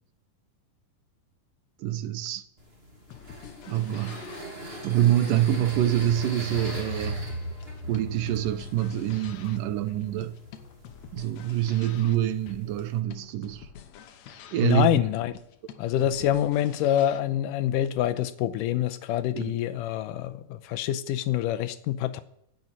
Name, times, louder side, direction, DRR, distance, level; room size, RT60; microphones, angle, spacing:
voice 1, 1.8-2.4 3.7-4.2 4.7-7.2 7.8-10.4 11.1-13.7 14.5-15.0 19.4-19.6, right 12 dB, 85° right, 2.5 m, -26 dB
sound 1, 2.6-13.0, equal, 20° right, 2.4 m, -40 dB
sound 2, 3.0-17.2, left 8 dB, 65° left, 2.1 m, -48 dB
voice 2, 14.6-15.3 15.8-22.2, left 12 dB, 85° left, 2.4 m, -26 dB
10.5 x 8.8 x 9.6 m
omnidirectional pair, 3.8 m